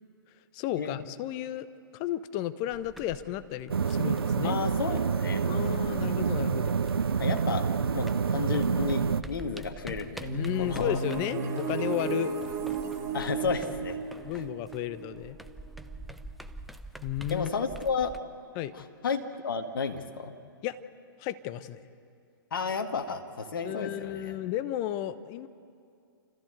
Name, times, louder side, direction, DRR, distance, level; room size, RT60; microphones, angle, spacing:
voice 1, 0.5-1.7 1.9-4.6 5.5-6.8 10.3-12.3 14.2-15.4 17.0-17.5 18.5-18.7 20.6-20.8 21.2-21.8 23.6-25.5, left 12 dB, 30° left, 13 dB, 0.9 m, -33 dB
sound 1, 2.7-7.6 7.9-18.2, right 1 dB, ahead, 0.6 m, -47 dB
sound 2, 3.7-9.2, right 6 dB, 75° right, 0.7 m, -27 dB
voice 2, 4.4-5.4 7.2-7.7 7.9-10.3 10.6-11.0 13.1-14.0 17.3-18.1 18.7-20.3 22.5-24.4, left 5 dB, 60° left, 5 dB, 2.0 m, -32 dB
sound 3, 10.2-15.9, right 4 dB, 20° right, 2.4 m, -34 dB
29.0 x 14.5 x 8.0 m, 2.4 s
figure-of-eight pair, 120°, 13 cm